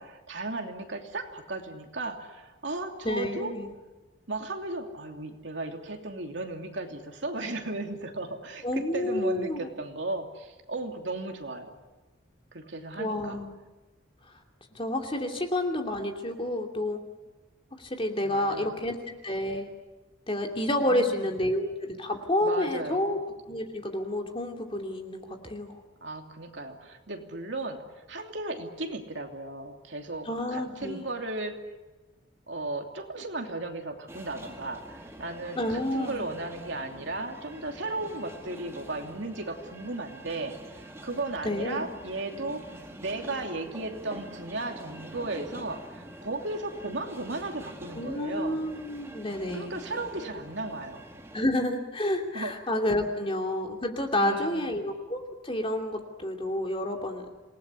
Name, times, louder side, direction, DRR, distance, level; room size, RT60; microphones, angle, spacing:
voice 1, 0.0-3.5 4.3-11.7 12.5-13.4 18.2-18.8 20.8-21.2 22.4-23.1 26.0-27.8 28.1-31.6 32.5-34.8 35.2-42.6 43.0-48.6 49.5-51.0 52.3-52.5 54.2-54.9, right 2 dB, 60° right, 3 dB, 2.9 m, -35 dB
voice 2, 3.0-3.7 8.6-9.7 13.0-13.6 14.7-17.0 17.8-19.7 20.3-23.2 23.5-25.8 30.3-31.0 35.5-36.3 41.4-41.9 47.9-49.8 51.3-57.3, left 1 dB, 25° left, 3 dB, 2.8 m, -29 dB
sound 1, 34.1-51.4, right 1 dB, 15° right, 2.1 m, -46 dB
27.5 x 19.0 x 9.8 m, 1.2 s
head